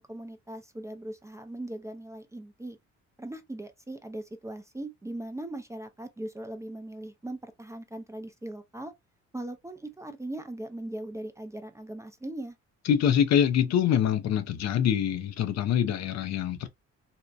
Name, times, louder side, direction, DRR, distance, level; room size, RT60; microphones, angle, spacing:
voice 1, 0.0-2.8 3.2-8.9 9.3-12.6, right 1 dB, 10° right, 0.4 m, -39 dB
voice 2, 12.9-16.7, left 9 dB, 60° left, 0.4 m, -25 dB
2.6 x 2.1 x 2.3 m
cardioid pair, 90°, 30 cm